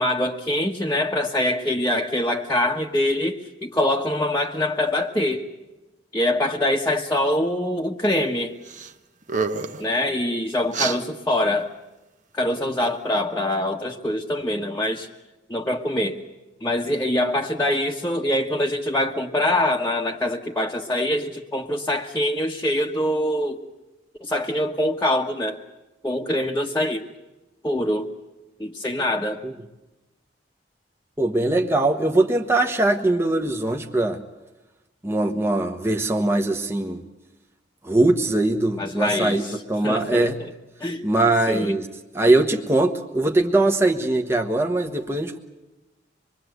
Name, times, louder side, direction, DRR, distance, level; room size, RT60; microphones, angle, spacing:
voice 1, 0.0-5.4 6.1-8.5 9.8-11.7 12.3-15.1 15.5-16.2 16.6-23.6 24.2-25.6 26.0-27.1 27.6-28.1 28.6-29.4 38.8-39.5 39.8-40.5 40.8-41.1 41.5-41.7, left 1 dB, 15° left, -1 dB, 1.2 m, -24 dB
sound 1, 8.7-8.9 9.2-9.9 10.7-11.0, right 5 dB, 40° right, 1.2 m, -27 dB
voice 2, 31.2-34.2 35.0-37.0 37.8-39.4 39.7-40.4 41.0-41.8 42.1-45.4, right 2 dB, 15° right, 3 dB, 1.1 m, -21 dB
25.5 x 22.0 x 8.0 m, 1.0 s
head